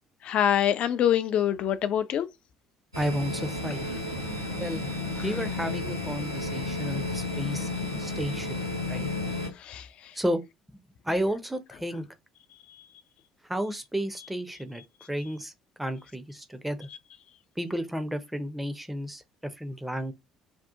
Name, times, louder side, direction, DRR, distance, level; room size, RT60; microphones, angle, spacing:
voice 1, 0.2-2.3 9.6-9.8, left 10 dB, 50° left, 0.4 m, -24 dB
sound 1, 2.9-9.5, left 2 dB, 90° right, 0.7 m, -32 dB
voice 2, 3.0-3.9 4.6-4.8 5.2-7.7 8.0-9.1 10.1-10.4 11.0-12.1 13.5-14.8 15.1-15.5 15.8-16.9 17.6-20.1, equal, 5° right, 0.5 m, -32 dB
2.7 x 2.4 x 3.4 m
figure-of-eight pair, 55°, 2 cm